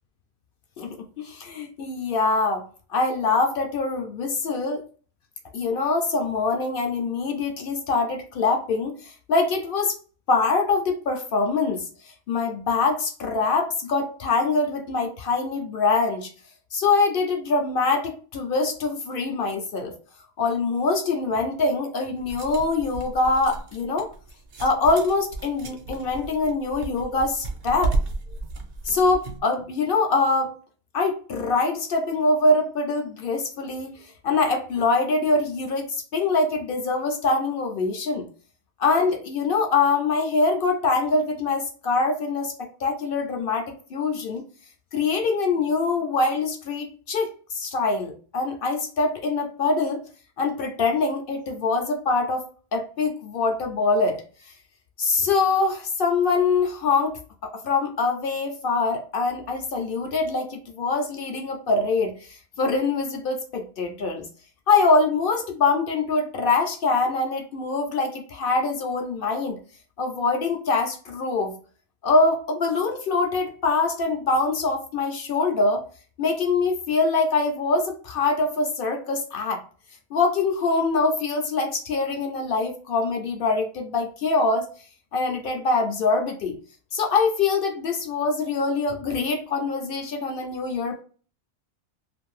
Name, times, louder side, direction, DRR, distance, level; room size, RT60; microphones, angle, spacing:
voice 1, 1.2-4.8 5.5-10.0 10.3-11.9 12.3-16.3 16.7-19.9 20.4-24.1 24.6-27.9 28.8-30.5 30.9-33.9 34.2-38.3 38.8-44.4 44.9-50.0 50.4-54.5 55.0-57.1 57.4-64.3 64.7-69.6 70.0-71.5 72.0-75.8 76.2-79.6 80.1-84.7 85.1-86.6 86.9-91.0, left 3 dB, 60° left, 4 dB, 0.6 m, -24 dB
sound 1, 22.2-29.4, right 3 dB, 55° right, 0.8 m, -33 dB
2.6 x 2.5 x 3.1 m, 0.40 s
omnidirectional pair, 1.4 m